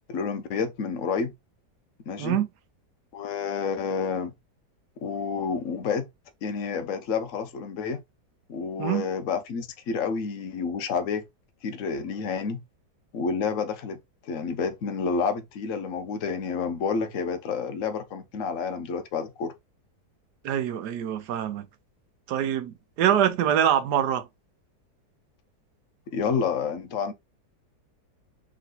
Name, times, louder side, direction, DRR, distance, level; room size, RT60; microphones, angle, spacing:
voice 1, 0.1-1.3 2.1-2.4 3.1-4.3 5.0-6.1 6.4-8.0 8.5-11.2 11.6-12.6 13.1-14.0 14.3-19.5 26.1-27.1, left 5 dB, 55° left, 1.1 m, -29 dB
voice 2, 20.4-21.7 22.3-24.3, right 10 dB, 75° right, 1.3 m, -24 dB
3.8 x 3.1 x 3.9 m
omnidirectional pair, 1.8 m